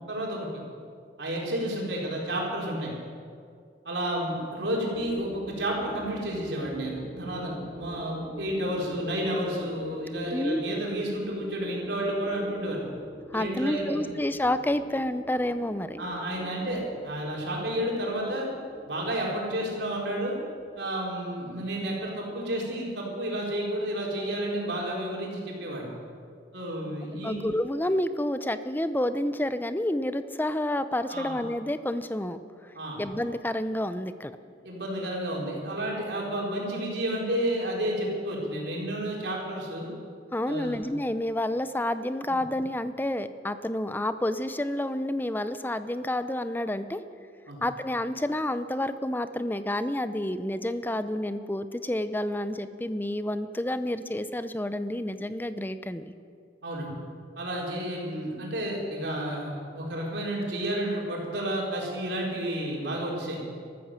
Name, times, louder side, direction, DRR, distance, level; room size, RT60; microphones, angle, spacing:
voice 1, 0.1-0.5 1.2-2.9 3.8-12.8 13.3-14.1 16.0-18.5 18.8-20.4 20.8-25.9 26.5-27.4 31.1-31.4 32.7-33.0 34.6-39.9 40.5-40.7 42.3-42.4 47.5-47.6 56.6-56.9 57.4-63.4, right 1 dB, 70° right, -3 dB, 4.4 m, -31 dB
sound 1, 4.9-21.9, left 1 dB, 20° right, 3.9 m, -44 dB
voice 2, 13.3-16.0 27.2-32.4 33.0-34.4 40.3-47.0 47.6-56.1, left 1 dB, 10° left, 12 dB, 0.6 m, -29 dB
14.0 x 13.5 x 7.5 m, 2.2 s
head